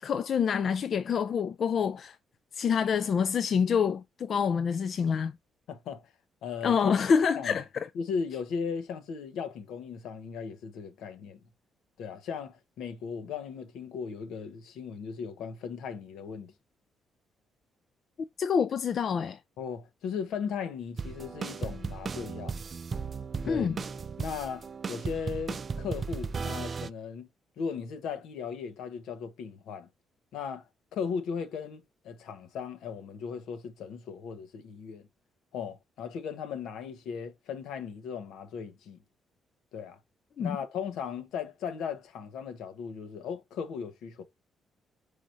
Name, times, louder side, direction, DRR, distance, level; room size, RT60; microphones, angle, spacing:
voice 1, 0.0-2.2 2.5-5.3 6.6-7.9 18.4-19.4 23.4-23.8 40.4-40.6, left 6 dB, 55° left, 0.3 m, -27 dB
voice 2, 5.7-6.1 6.4-6.9 7.4-7.6 7.9-11.4 12.0-16.5 19.6-22.6 23.4-23.8 24.2-27.3 27.6-29.9 30.3-30.6 30.9-35.1 35.5-39.0 39.7-40.0 40.4-44.2, left 6 dB, 85° left, 0.9 m, -37 dB
sound 1, 21.0-26.9, right 5 dB, 40° right, 0.3 m, -36 dB
4.8 x 4.3 x 2.5 m
cardioid pair, 90°, 0 cm